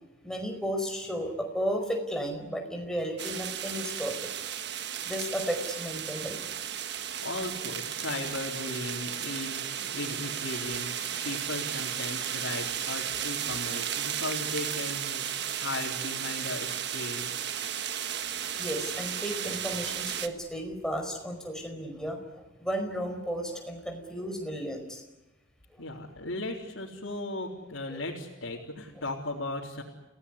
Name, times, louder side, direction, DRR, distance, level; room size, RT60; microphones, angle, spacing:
voice 1, 0.2-4.3 5.0-6.4 18.6-25.0 25.7-25.8 27.9-28.0, equal, 5° left, 2 dB, 4.9 m, -34 dB
sound 1, 3.2-20.3, right 9 dB, 60° right, 1.4 m, -34 dB
voice 2, 7.2-17.3 25.8-29.8, left 2 dB, 85° left, -5 dB, 3.7 m, -37 dB
30.0 x 17.0 x 9.6 m, 1.0 s
head